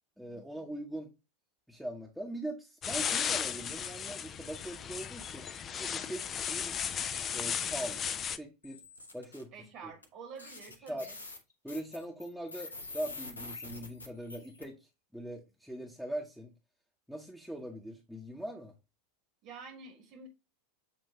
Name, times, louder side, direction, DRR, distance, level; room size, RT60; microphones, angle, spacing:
voice 1, 0.2-1.1 1.7-5.5 5.8-8.0 8.4-8.8 9.1-9.5 9.8-9.9 10.9-11.1 11.6-14.8 15.1-16.5 17.1-18.7, right 1 dB, ahead, 0.8 m, -41 dB
sound 1, 2.8-8.4, left 8 dB, 30° left, 0.4 m, -35 dB
sound 2, 8.6-9.4 10.0-10.1 10.4-14.6, left 3 dB, 85° left, 0.7 m, -46 dB
voice 2, 9.5-11.2 19.4-20.3, right 5 dB, 50° right, 1.3 m, -48 dB
7.1 x 2.7 x 2.7 m
figure-of-eight pair, 85°, 0 cm